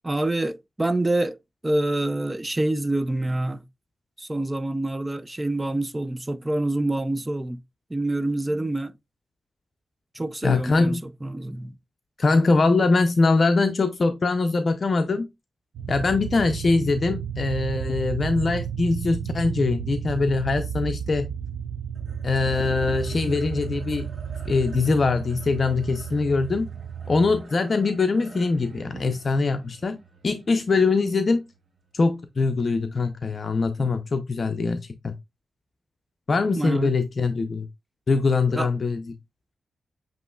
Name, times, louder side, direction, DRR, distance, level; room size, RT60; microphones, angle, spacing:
voice 1, 0.0-1.4 1.6-3.6 4.2-7.6 7.9-8.9 10.1-11.8 36.5-36.9 38.5-38.7, right 1 dB, 20° right, 0.5 m, -26 dB
voice 2, 10.4-11.0 12.2-15.3 15.9-21.3 22.2-24.1 24.5-26.7 27.1-30.0 30.2-31.4 31.9-35.1 36.3-37.7 38.1-39.1, left 3 dB, 50° left, 0.5 m, -22 dB
sound 1, 15.7-27.4, right 8 dB, 90° right, 0.5 m, -33 dB
sound 2, 21.9-32.4, right 3 dB, 50° right, 1.7 m, -47 dB
7.7 x 3.0 x 2.2 m
cardioid pair, 85°, 0 cm